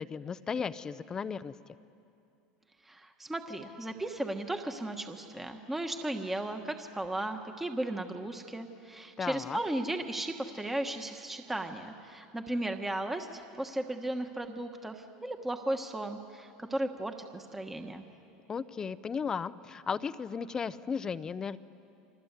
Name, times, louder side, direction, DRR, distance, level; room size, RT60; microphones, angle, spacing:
voice 1, 0.0-1.5 9.2-9.6 18.5-21.6, left 6 dB, 20° left, 15 dB, 0.6 m, -35 dB
voice 2, 2.8-18.0, right 1 dB, 10° right, 5 dB, 1.3 m, -35 dB
29.5 x 24.5 x 8.2 m, 2.7 s
supercardioid pair, 140°, 3 cm